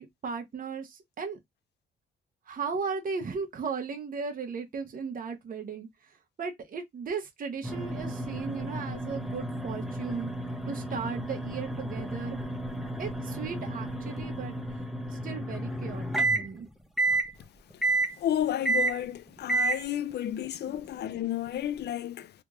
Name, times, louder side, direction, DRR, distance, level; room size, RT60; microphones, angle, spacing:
voice 1, 0.0-1.4 2.5-10.3 10.7-12.4 13.0-14.5 15.1-16.7 20.7-20.8, right 5 dB, 45° right, 1.0 m, -36 dB
sound 1, 7.6-16.5 17.0-17.3 17.8-18.1 18.7-19.0 19.5-19.8, right 2 dB, ahead, 0.8 m, -31 dB
voice 2, 18.2-22.3, left 11 dB, 60° left, 0.5 m, -31 dB
3.3 x 3.0 x 2.5 m
cardioid pair, 90°, 20 cm